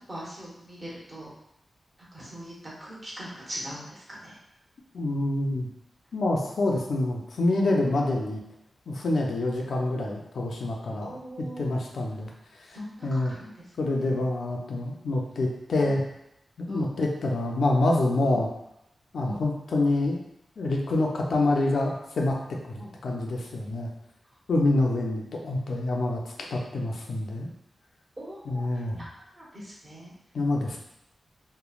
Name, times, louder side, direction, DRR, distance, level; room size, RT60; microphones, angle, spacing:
voice 1, 0.1-1.3 2.1-4.4 11.0-11.8 12.7-13.6 14.0-14.3 15.8-16.0 16.7-16.9 18.3-18.4 19.2-19.4 22.8-22.9 28.2-28.7 29.0-29.1 29.3-30.1, equal, 30° right, -6 dB, 0.9 m, -41 dB
voice 2, 4.9-5.7 6.1-8.4 8.9-12.3 13.0-13.3 13.8-16.0 16.6-18.5 19.1-20.2 20.6-22.4 22.7-23.9 24.5-26.2 26.5-27.5 28.5-29.0 30.3-30.8, left 2 dB, 75° left, 0 dB, 0.4 m, -26 dB
3.0 x 2.1 x 2.3 m, 0.83 s
wide cardioid pair, 120°, 0 cm